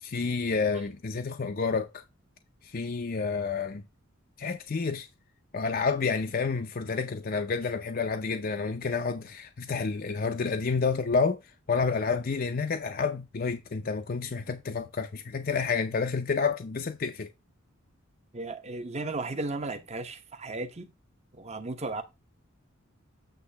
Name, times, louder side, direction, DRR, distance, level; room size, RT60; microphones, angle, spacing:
voice 1, 0.0-2.0 2.6-3.8 4.4-5.1 5.5-11.4 11.7-17.3, left 4 dB, 45° left, 0.5 m, -29 dB
voice 2, 18.3-20.9 21.3-22.0, right 3 dB, 30° right, 0.9 m, -35 dB
8.1 x 3.1 x 5.7 m
head